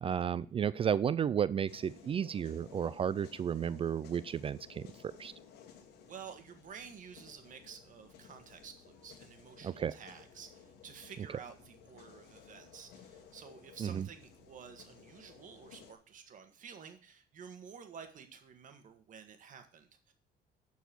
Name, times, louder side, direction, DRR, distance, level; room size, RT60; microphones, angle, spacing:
voice 1, 0.0-5.3 9.6-10.0 13.8-14.1, right 8 dB, 35° right, 18 dB, 0.4 m, -33 dB
sound 1, 1.7-15.9, left 7 dB, 75° left, 1.5 m, -57 dB
voice 2, 6.1-20.1, right 7 dB, 50° right, 7 dB, 1.7 m, -51 dB
11.5 x 4.6 x 6.0 m, 0.43 s
cardioid pair, 110°, 17 cm